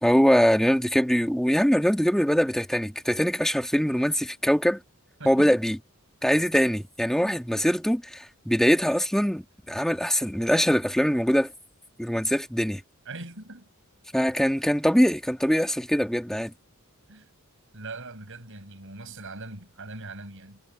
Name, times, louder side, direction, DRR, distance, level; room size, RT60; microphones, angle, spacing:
voice 1, 0.0-4.8 5.3-5.8 6.2-11.5 12.0-12.8 14.1-16.5, equal, ahead, 2.0 m, -23 dB
voice 2, 5.2-5.6 13.0-13.7 17.1-17.3 17.7-20.6, right 2 dB, 60° right, 6.6 m, -41 dB
head